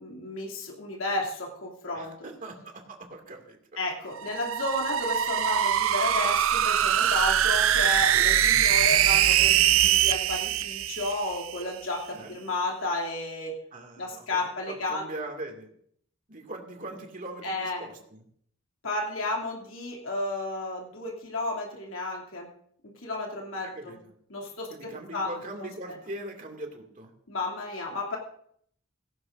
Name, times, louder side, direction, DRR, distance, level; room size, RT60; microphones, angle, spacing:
voice 1, 0.0-2.1 3.8-13.6 14.0-15.1 17.4-17.9 18.8-22.5 22.8-24.0 24.3-24.7 25.1-25.3 25.6-25.7 27.3-28.2, left 2 dB, 80° left, -1 dB, 2.8 m, -32 dB
voice 2, 1.9-3.6 4.2-4.3 12.1-12.3 13.7-15.7 16.3-18.2 23.6-24.1 24.7-27.1, right 2 dB, 40° right, 2 dB, 2.3 m, -41 dB
sound 1, 4.1-11.6, right 10 dB, 75° right, 0.5 m, -23 dB
17.5 x 16.5 x 2.6 m, 0.65 s
head